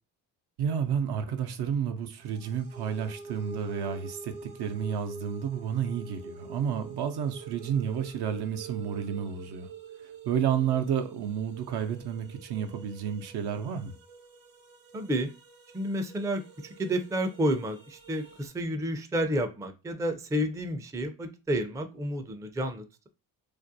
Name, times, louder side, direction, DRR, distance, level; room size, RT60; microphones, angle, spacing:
voice 1, 0.6-9.7 10.0-13.9, right 8 dB, 65° right, 0.6 m, -31 dB
sound 1, 2.2-18.5, right 5 dB, 50° right, 0.9 m, -47 dB
voice 2, 14.9-15.3 15.7-23.1, equal, 10° right, 0.4 m, -30 dB
2.5 x 2.1 x 2.6 m
supercardioid pair, 50°, 44 cm